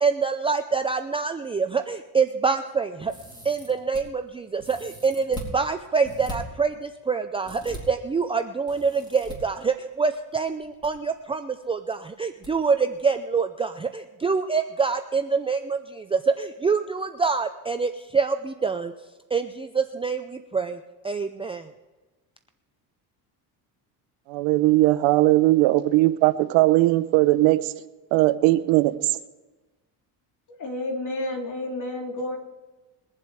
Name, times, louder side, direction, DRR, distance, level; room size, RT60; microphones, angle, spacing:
voice 1, 0.0-3.1 3.4-18.9 19.3-20.8 21.0-21.7, right 5 dB, 15° right, 0.5 m, -26 dB
sound 1, 3.1-4.0 4.6-5.5 6.0-6.3 7.4-7.8 8.7-9.3 10.5-10.9 11.1-11.2 12.4-12.5 12.9-13.0, equal, 10° left, 4.0 m, -40 dB
voice 2, 24.3-27.6 28.1-28.9, right 18 dB, 90° right, 0.9 m, -19 dB
voice 3, 30.5-32.4, left 1 dB, 40° left, 3.3 m, -30 dB
22.5 x 7.5 x 4.9 m
cardioid pair, 120°, 44 cm